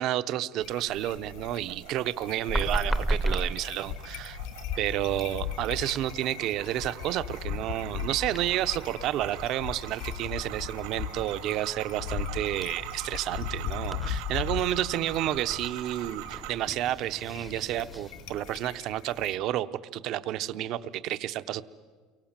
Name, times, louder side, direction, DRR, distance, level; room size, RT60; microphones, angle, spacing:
voice 1, 0.0-4.4 4.8-19.7 19.9-21.6, right 13 dB, 40° right, 13 dB, 0.8 m, -30 dB
sound 1, 0.6-19.3, left 8 dB, 70° left, 2.2 m, -39 dB
sound 2, 0.9-16.5, right 14 dB, 75° right, 2.0 m, -44 dB
sound 3, 2.5-18.8, right 1 dB, ahead, 0.8 m, -38 dB
29.5 x 23.5 x 7.4 m, 1.5 s
cardioid pair, 175°, 0 cm